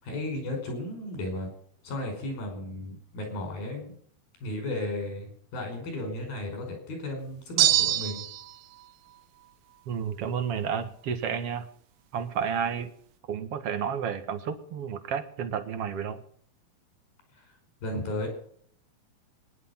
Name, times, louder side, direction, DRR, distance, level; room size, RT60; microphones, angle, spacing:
voice 1, 0.0-1.5 1.8-3.9 4.4-8.3 17.8-18.3, left 1 dB, 80° left, 4 dB, 7.2 m, -34 dB
sound 1, 7.6-8.5, right 14 dB, 75° right, 2.2 m, -23 dB
voice 2, 9.9-11.7 12.1-12.9 13.3-16.2, right 7 dB, 55° right, 9 dB, 1.8 m, -31 dB
21.0 x 11.0 x 5.7 m, 0.62 s
omnidirectional pair, 4.1 m